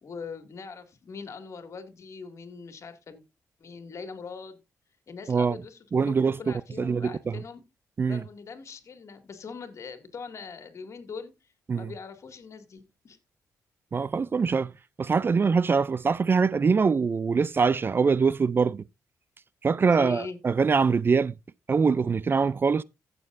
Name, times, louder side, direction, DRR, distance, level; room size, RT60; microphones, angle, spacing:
voice 1, 0.0-3.2 3.6-4.6 5.1-7.6 8.1-11.3 11.7-13.2 19.9-20.4, left 5 dB, 55° left, 2.2 m, -41 dB
voice 2, 5.9-6.3 6.8-7.1 8.0-8.2 11.7-11.9 13.9-14.7 15.0-18.8 19.6-21.3 21.7-22.8, right 5 dB, 35° right, 0.4 m, -23 dB
15.5 x 6.8 x 2.6 m
cardioid pair, 75°, 6 cm